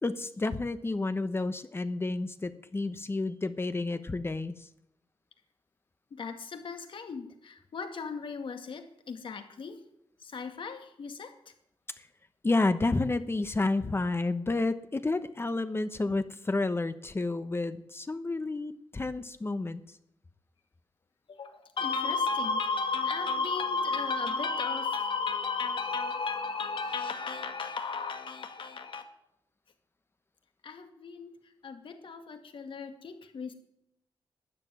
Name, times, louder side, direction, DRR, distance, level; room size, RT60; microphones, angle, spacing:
voice 1, 0.0-4.5 12.4-19.8, left 2 dB, 25° left, 11 dB, 1.0 m, -30 dB
voice 2, 6.1-9.8 10.2-11.5 21.3-29.1 30.6-33.5, left 4 dB, 65° left, 7 dB, 2.2 m, -34 dB
13.0 x 9.8 x 9.4 m, 0.78 s
cardioid pair, 90°, 9 cm